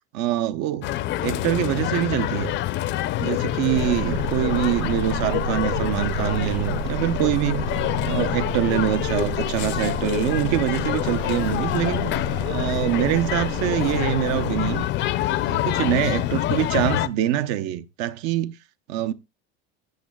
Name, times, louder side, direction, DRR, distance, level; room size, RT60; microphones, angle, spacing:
voice 1, 0.1-0.9 1.2-2.6 3.2-7.7 8.0-12.1 12.5-14.8 15.5-18.5 18.9-19.1, right 12 dB, 60° right, 0.9 m, -24 dB
sound 1, 0.8-17.1, left 14 dB, 40° left, 0.6 m, -26 dB
sound 2, 3.7-14.9, right 9 dB, 85° right, 2.8 m, -32 dB
15.5 x 8.3 x 2.3 m
supercardioid pair, 135°, 30 cm